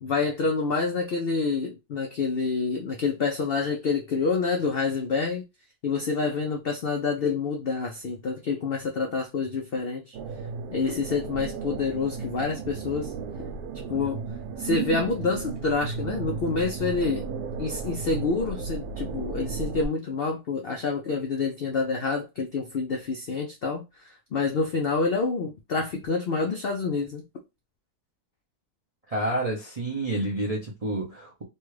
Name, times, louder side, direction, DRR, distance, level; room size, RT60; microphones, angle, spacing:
voice 1, 0.0-5.4 5.8-10.2 10.7-13.1 13.4-13.5 13.9-14.2 14.6-17.3 17.6-27.2, left 4 dB, 85° left, 0.5 m, -27 dB
sound 1, 10.1-19.9, right 5 dB, 85° right, 1.2 m, -34 dB
voice 2, 29.1-31.4, right 1 dB, 55° right, 0.4 m, -29 dB
3.2 x 2.3 x 3.1 m
omnidirectional pair, 1.7 m